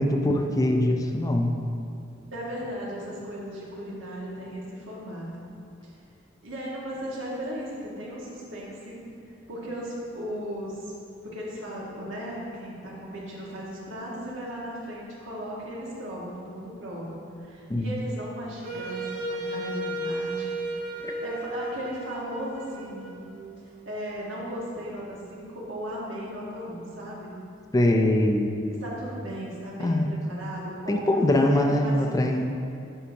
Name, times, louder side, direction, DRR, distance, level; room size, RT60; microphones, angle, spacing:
voice 1, 0.0-1.5 17.7-17.9 27.7-28.5 29.8-30.1 30.9-32.5, left 1 dB, 20° left, 3 dB, 0.4 m, -22 dB
voice 2, 2.3-5.4 6.4-9.0 9.5-10.9 11.2-20.5 21.0-23.1 23.8-27.3 28.7-32.0, equal, 85° right, -5 dB, 1.6 m, -36 dB
Wind instrument woodwind instrument, 18.6-23.6, right 1 dB, 45° right, 0.7 m, -34 dB
11.0 x 4.7 x 2.8 m, 2.5 s
head